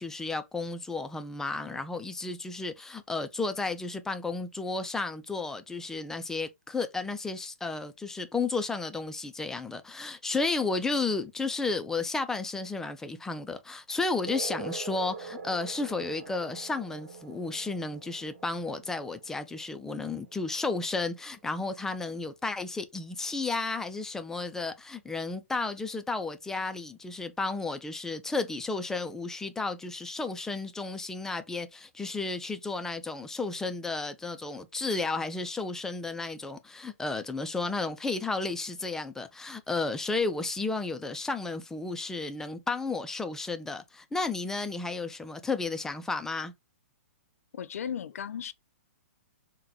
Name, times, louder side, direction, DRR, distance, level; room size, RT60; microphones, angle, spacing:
voice 1, 0.0-46.5, left 3 dB, 5° left, 0.3 m, -33 dB
sound 1, 14.3-21.3, right 4 dB, 70° right, 1.2 m, -44 dB
voice 2, 47.5-48.5, left 8 dB, 75° left, 0.4 m, -35 dB
3.8 x 2.2 x 2.7 m
hypercardioid pair, 135°, 8 cm